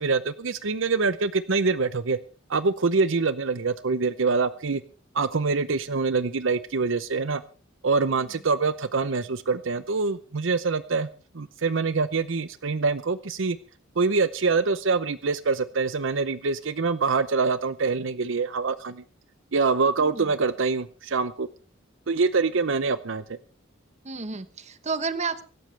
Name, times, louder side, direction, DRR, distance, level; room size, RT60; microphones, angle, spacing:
voice 1, 0.0-2.2 2.5-4.8 5.1-7.4 7.8-11.1 11.3-13.6 14.0-19.0 19.5-21.5 22.1-23.4, right 4 dB, 70° right, 14 dB, 0.7 m, -25 dB
voice 2, 24.0-25.4, right 4 dB, 35° right, 12 dB, 1.2 m, -31 dB
24.0 x 12.5 x 3.4 m, 0.36 s
head